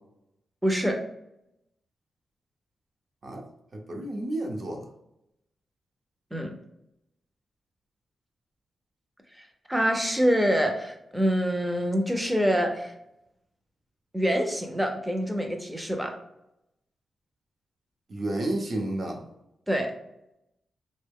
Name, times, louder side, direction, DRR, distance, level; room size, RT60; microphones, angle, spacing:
voice 1, 0.6-1.0 6.3-6.6 9.4-12.9 14.1-16.2 19.7-19.9, equal, 5° right, 3 dB, 0.5 m, -26 dB
voice 2, 3.9-4.8 18.1-19.2, right 1 dB, 45° right, 2 dB, 0.7 m, -30 dB
3.6 x 2.1 x 3.5 m, 0.84 s
wide cardioid pair, 140°, 0 cm